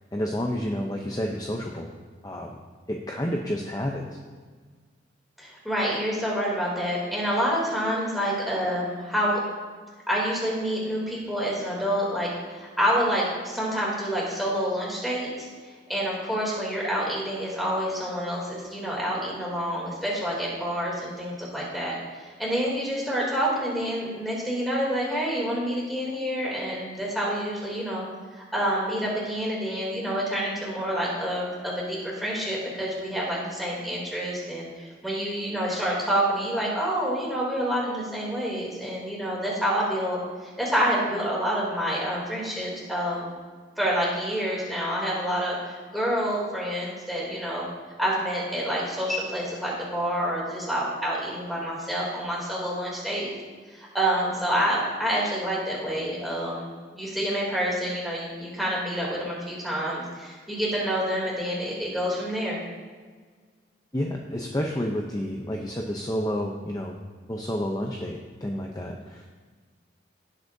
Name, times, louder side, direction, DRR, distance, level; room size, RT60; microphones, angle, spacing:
voice 1, 0.1-1.9 2.2-2.6 2.9-4.2 63.9-67.0 67.3-69.2, equal, 20° left, 0 dB, 0.7 m, -30 dB
voice 2, 5.4-9.4 10.1-15.5 15.9-28.1 28.3-43.3 43.8-47.7 48.0-53.3 53.7-62.6, equal, ahead, -5 dB, 2.9 m, -28 dB
17.5 x 8.1 x 2.7 m, 1.5 s
head